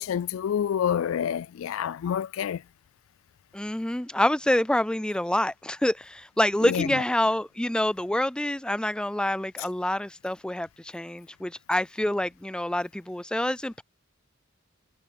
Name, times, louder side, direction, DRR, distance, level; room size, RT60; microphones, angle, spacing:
voice 1, 0.0-2.6 6.6-6.9, left 8 dB, 75° left, 0.3 m, -28 dB
voice 2, 3.5-13.8, left 1 dB, 5° left, 0.4 m, -27 dB
head